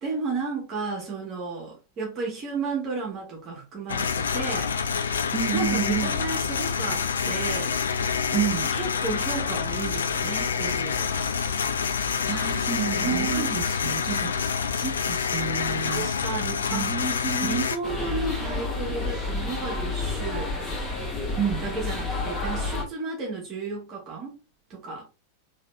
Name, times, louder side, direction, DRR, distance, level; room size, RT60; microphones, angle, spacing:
voice 1, 0.0-5.0 5.5-7.8 8.7-11.3 13.0-13.7 15.5-20.6 21.6-24.4 24.7-25.1, right 4 dB, 35° right, 1.9 m, -33 dB
sound 1, 3.9-17.8, left 6 dB, 70° left, 0.5 m, -27 dB
voice 2, 5.3-6.1 8.3-8.7 12.3-14.3 14.8-16.0 16.7-17.6 21.4-21.6, right 8 dB, 15° right, 1.8 m, -30 dB
sound 2, 17.8-22.8, left 3 dB, 15° left, 1.7 m, -30 dB
3.9 x 3.3 x 3.3 m
figure-of-eight pair, 90°, 0 cm